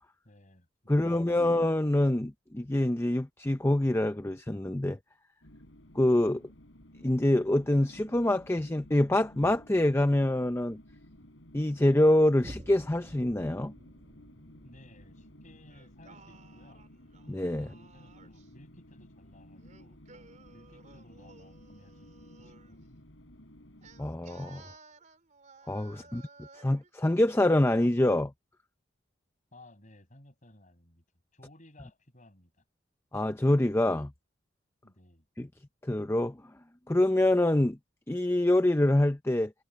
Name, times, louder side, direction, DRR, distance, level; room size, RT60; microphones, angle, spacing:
voice 1, 0.2-1.5 14.6-16.9 17.6-20.0 20.5-23.0 25.9-26.2 29.5-31.0 31.3-32.6 34.8-35.3, left 1 dB, 40° left, 6.0 m, -57 dB
voice 2, 0.9-5.0 6.0-6.4 7.0-10.8 11.5-13.7 17.3-17.7 24.0-24.6 25.7-26.2 26.6-28.3 33.1-34.1 35.4-35.5 35.8-36.4 36.9-37.8 38.1-39.5, left 1 dB, 15° left, 0.6 m, -25 dB
sound 1, 5.4-24.0, left 1 dB, 80° left, 4.7 m, -54 dB
Boom, 12.4-19.3 19.9-20.0, equal, 25° right, 1.7 m, -53 dB
Singing, 15.7-18.5 19.6-22.8 23.8-26.9, right 4 dB, 40° right, 3.9 m, -56 dB
head